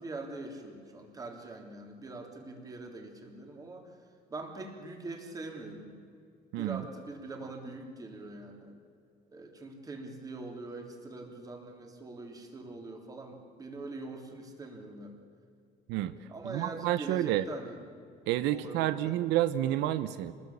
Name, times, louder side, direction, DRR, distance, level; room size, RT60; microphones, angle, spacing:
voice 1, 0.0-4.0 4.3-6.0 6.6-8.7 9.3-15.2 16.3-17.8 18.5-19.2, right 2 dB, 20° right, 3 dB, 3.5 m, -43 dB
voice 2, 6.5-6.8 15.9-16.1 16.4-17.5 18.3-20.3, right 13 dB, 90° right, 12 dB, 1.1 m, -29 dB
27.0 x 20.0 x 8.6 m, 2.3 s
cardioid pair, 165°, 18 cm